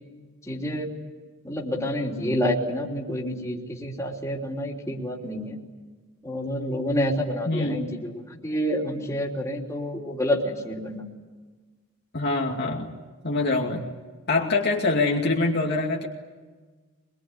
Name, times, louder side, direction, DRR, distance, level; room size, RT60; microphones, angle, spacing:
voice 1, 0.5-0.9 1.4-5.6 6.2-11.1, equal, 15° left, -2 dB, 3.3 m, -28 dB
voice 2, 7.5-7.8 12.1-12.9 13.2-13.8 14.3-16.1, left 3 dB, 50° left, -1 dB, 2.4 m, -24 dB
24.5 x 22.0 x 9.8 m, 1.3 s
head